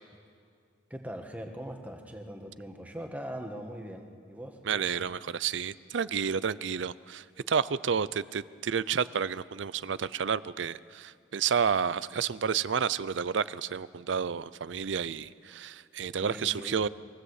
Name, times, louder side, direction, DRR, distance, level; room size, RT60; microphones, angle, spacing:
voice 1, 0.9-5.0 16.2-16.8, equal, 10° right, 3 dB, 1.5 m, -41 dB
voice 2, 4.7-16.9, right 7 dB, 75° right, 18 dB, 0.5 m, -30 dB
22.5 x 15.5 x 8.1 m, 2.2 s
head